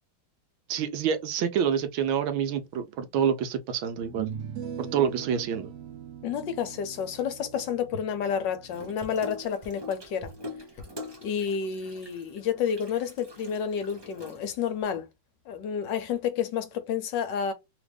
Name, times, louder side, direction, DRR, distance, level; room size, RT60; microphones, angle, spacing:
voice 1, 0.7-4.3 4.8-5.7, right 8 dB, 80° right, 1.5 m, -27 dB
sound 1, 2.9-3.0 4.0-9.2, right 8 dB, 65° right, 1.1 m, -41 dB
voice 2, 6.2-10.3 11.2-15.1 15.5-17.5, left 7 dB, 70° left, 1.2 m, -30 dB
Water tap faucet / Sink (filling or washing), 8.7-14.8, left 1 dB, 40° right, 0.3 m, -44 dB
3.5 x 2.5 x 3.2 m
omnidirectional pair, 2.2 m